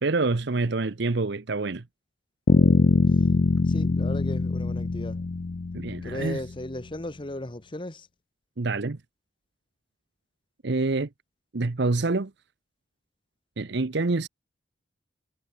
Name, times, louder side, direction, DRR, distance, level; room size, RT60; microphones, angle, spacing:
voice 1, 0.0-1.8 5.7-6.4 8.6-9.0 10.6-11.1 11.5-12.3 13.6-14.3, right 3 dB, 60° right, 0.8 m, -26 dB
sound 1, 2.5-6.4, left 3 dB, 45° left, 0.5 m, -23 dB
voice 2, 3.7-5.2 6.0-8.1, left 1 dB, 25° left, 1.1 m, -36 dB
head